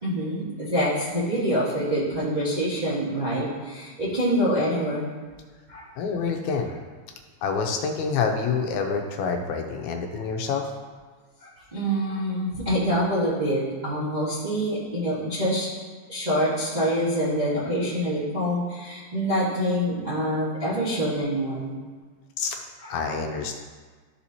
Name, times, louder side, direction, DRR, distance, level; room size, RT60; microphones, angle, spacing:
voice 1, 0.0-5.1 5.7-5.8 11.4-15.7 16.1-21.7 22.8-23.2, equal, 45° right, -9 dB, 0.5 m, -26 dB
voice 2, 6.0-6.7 7.4-10.7 22.4-22.6 22.9-23.6, left 5 dB, 85° left, 3 dB, 2.0 m, -27 dB
12.5 x 4.3 x 2.8 m, 1.5 s
omnidirectional pair, 3.4 m